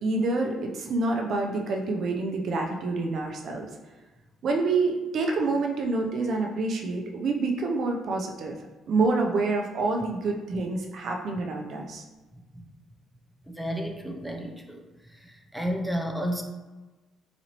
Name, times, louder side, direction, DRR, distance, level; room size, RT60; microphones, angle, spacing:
voice 1, 0.0-3.7 4.4-8.6 8.9-12.0, right 3 dB, 60° right, 2 dB, 0.5 m, -27 dB
voice 2, 13.5-14.8 15.1-16.4, equal, ahead, 2 dB, 0.5 m, -32 dB
4.1 x 2.6 x 2.9 m, 1.2 s
cardioid pair, 95°, 0 cm